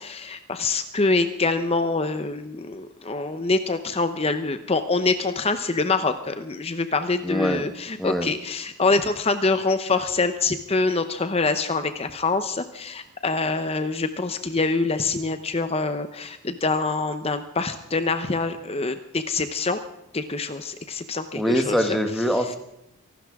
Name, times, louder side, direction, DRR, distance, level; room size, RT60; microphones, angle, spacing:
voice 1, 0.0-19.8 20.1-22.0, left 3 dB, 25° left, 9 dB, 0.8 m, -25 dB
voice 2, 7.2-7.6 8.0-8.3 21.3-22.6, equal, ahead, 5 dB, 1.3 m, -23 dB
25.0 x 12.5 x 3.6 m, 0.84 s
head